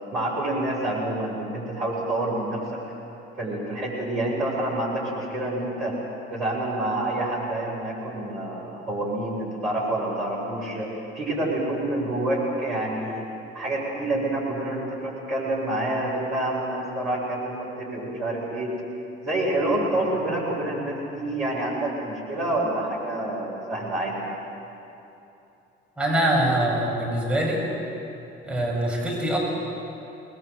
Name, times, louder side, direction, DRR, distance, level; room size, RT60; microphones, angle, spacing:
voice 1, 0.1-2.8 3.4-6.0 6.3-13.3 13.5-18.7 19.2-24.2, right 1 dB, 70° right, -6 dB, 7.7 m, -27 dB
voice 2, 26.0-27.6 28.4-29.4, right 1 dB, 5° right, -3 dB, 7.4 m, -23 dB
25.0 x 21.0 x 8.2 m, 2.8 s
figure-of-eight pair, 50°, 33 cm